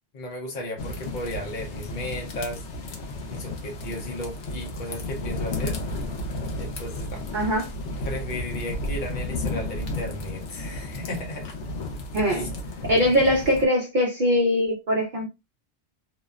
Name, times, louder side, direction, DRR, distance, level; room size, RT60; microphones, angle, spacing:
voice 1, 0.1-2.6 3.3-5.8 6.6-7.2 8.0-11.5 12.3-12.5, left 1 dB, 50° left, 0.8 m, -35 dB
sound 1, 0.8-13.7, left 1 dB, 85° left, 1.0 m, -33 dB
voice 2, 7.3-7.7 12.1-12.5 12.9-15.3, equal, 50° right, 0.7 m, -22 dB
2.8 x 2.1 x 2.3 m
omnidirectional pair, 1.2 m